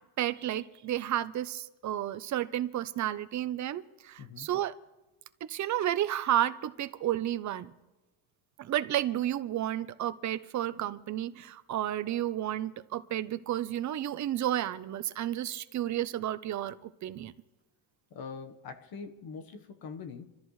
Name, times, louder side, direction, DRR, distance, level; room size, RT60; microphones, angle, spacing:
voice 1, 0.2-4.8 5.5-7.7 8.6-17.3, right 12 dB, 35° right, 0.7 m, -32 dB
voice 2, 4.2-4.5 18.1-20.4, left 5 dB, 50° left, 1.3 m, -43 dB
26.5 x 13.5 x 3.2 m
cardioid pair, 150°, 48 cm